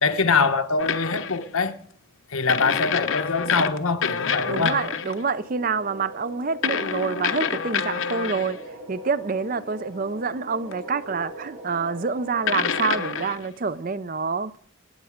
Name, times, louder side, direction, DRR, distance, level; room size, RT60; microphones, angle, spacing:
voice 1, 0.0-1.7 2.3-4.8, left 4 dB, 85° left, 1.3 m, -23 dB
sound 1, 0.8-1.5 2.5-5.2 6.6-8.6 10.7-10.8 12.5-13.5, left 6 dB, 70° left, 0.9 m, -27 dB
sound 2, 3.9-13.3, right 1 dB, 80° right, 6.4 m, -42 dB
voice 2, 4.4-8.6 8.9-14.6, right 4 dB, 40° right, 0.5 m, -27 dB
26.0 x 9.5 x 5.0 m
head